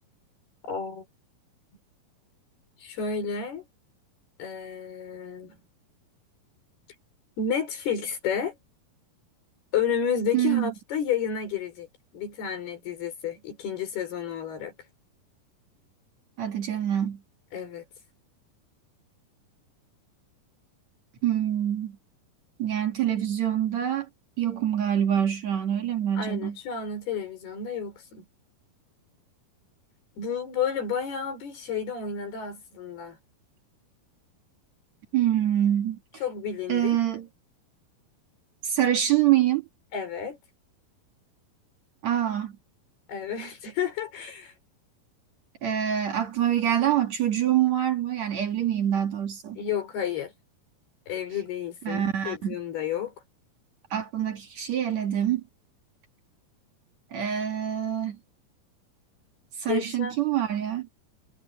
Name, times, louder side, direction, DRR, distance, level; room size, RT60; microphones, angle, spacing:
voice 1, 0.6-1.1 2.8-3.7 4.4-5.6 7.4-8.6 9.7-11.9 12.1-14.7 17.5-17.8 26.2-28.3 30.2-33.2 36.2-37.0 39.9-40.4 43.1-44.5 49.6-50.3 51.1-53.1 59.7-60.2, left 7 dB, 80° left, 7.2 m, -31 dB
voice 2, 10.3-10.7 16.4-17.2 21.2-22.0 22.6-24.1 24.4-26.6 35.1-36.0 36.7-37.3 38.6-39.7 42.0-42.5 45.6-49.6 51.8-52.6 53.9-55.4 57.1-58.2 59.6-60.9, right 10 dB, 55° right, 2.7 m, -25 dB
omnidirectional pair, 4.4 m